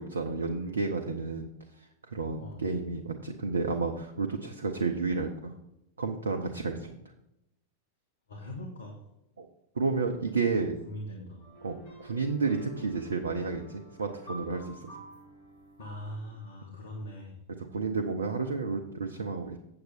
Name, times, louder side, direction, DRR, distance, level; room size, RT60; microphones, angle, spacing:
voice 1, 0.0-1.5 2.1-5.5 6.0-7.0 9.4-9.5 9.8-10.7 11.6-14.9 17.7-19.6, right 4 dB, 70° right, 3 dB, 0.7 m, -31 dB
voice 2, 8.3-9.0 10.5-11.5 15.8-17.4, left 1 dB, 70° left, 0 dB, 1.4 m, -41 dB
sound 1, 11.4-16.4, right 1 dB, 50° left, 2.8 m, -48 dB
8.0 x 7.7 x 4.2 m, 0.84 s
figure-of-eight pair, 90°, 0 cm